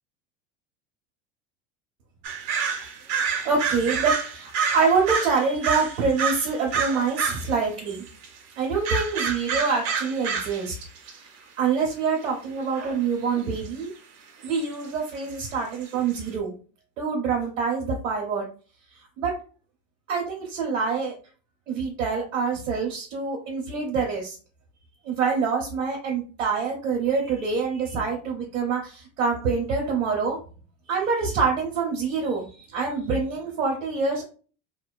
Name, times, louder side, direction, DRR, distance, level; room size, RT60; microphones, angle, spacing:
sound 1, 2.2-7.6 7.9-8.3 8.8-10.7 11.0-11.1 12.8-12.9 13.7-13.8 14.4-14.7 15.5-15.6 15.8-15.9 16.1-16.2, right 6 dB, 40° right, 0.7 m, -28 dB
voice 1, 3.3-8.1 8.6-10.7 11.6-13.9 14.4-16.5 17.0-18.5 19.2-19.3 20.1-21.1 21.7-24.4 25.0-30.4 30.9-32.5 32.7-34.2, right 5 dB, 90° right, -3 dB, 0.8 m, -26 dB
2.5 x 2.2 x 2.2 m, 0.37 s
hypercardioid pair, 90°, 38 cm